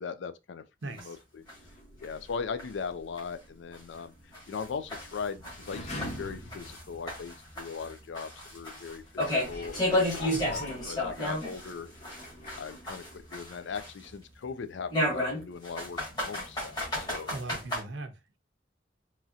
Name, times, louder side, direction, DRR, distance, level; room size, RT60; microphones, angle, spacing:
voice 1, 0.0-1.4 2.0-11.9 12.6-17.3, left 5 dB, 75° left, 0.4 m, -39 dB
voice 2, 0.8-1.2 10.3-10.6 17.3-18.4, right 2 dB, 70° right, 0.6 m, -40 dB
sound 1, 1.0-1.1 1.5-1.6 2.0-2.1 2.6-2.7 3.2-3.3 3.7-3.8 4.3-6.8 7.1-11.7 12.0-14.1 14.9-17.8, left 1 dB, 25° left, 1.3 m, -32 dB
sound 2, 1.4-7.5 8.1-8.2 9.1-13.4 13.6-13.7, left 1 dB, 40° left, 0.7 m, -45 dB
3.1 x 2.7 x 2.3 m
head